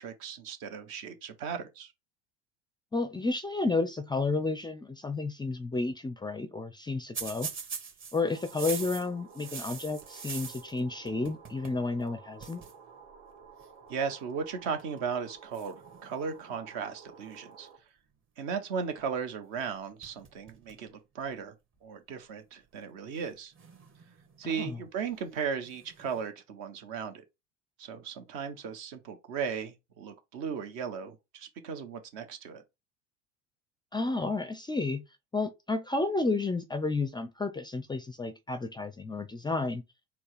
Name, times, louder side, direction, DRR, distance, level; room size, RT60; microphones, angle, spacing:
voice 1, 0.0-1.9 13.9-17.7 18.4-21.5 21.8-23.5 24.4-27.2 27.8-32.6, right 6 dB, 60° right, 1.2 m, -36 dB
voice 2, 2.9-7.5 8.1-12.6 24.6-24.8 33.9-35.0 35.3-39.8, left 3 dB, 10° left, 0.4 m, -31 dB
sound 1, 7.1-10.8 11.1-11.8 12.1-12.2 12.4-12.7 13.6-13.9 14.6-15.0 15.5-16.6 19.6-19.7 20.0-20.8 21.3-21.4 22.3-22.4 23.5-24.4 25.6-26.2, right 6 dB, 35° right, 1.5 m, -42 dB
sound 2, 8.3-17.8, right 5 dB, 75° right, 1.6 m, -53 dB
4.4 x 2.3 x 4.8 m
hypercardioid pair, 75°, 37 cm